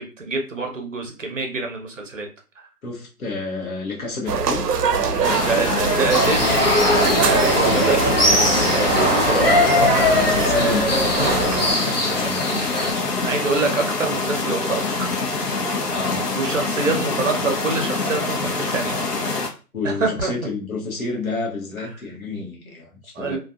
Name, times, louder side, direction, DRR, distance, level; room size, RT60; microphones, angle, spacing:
voice 1, 0.0-2.3 5.2-10.3 13.2-14.8 15.5-15.6 16.3-19.0 19.8-20.3 23.1-23.4, right 3 dB, 55° right, 0.7 m, -26 dB
voice 2, 2.8-5.5 7.2-7.9 10.1-13.3 15.9-16.3 19.7-23.4, left 3 dB, 60° left, 1.0 m, -31 dB
sound 1, 4.3-11.8, right 5 dB, 90° right, 0.5 m, -23 dB
sound 2, 5.2-19.5, left 3 dB, 85° left, 0.9 m, -25 dB
sound 3, 6.1-12.9, left 1 dB, 40° left, 0.5 m, -20 dB
2.5 x 2.5 x 2.3 m
figure-of-eight pair, 170°, 47 cm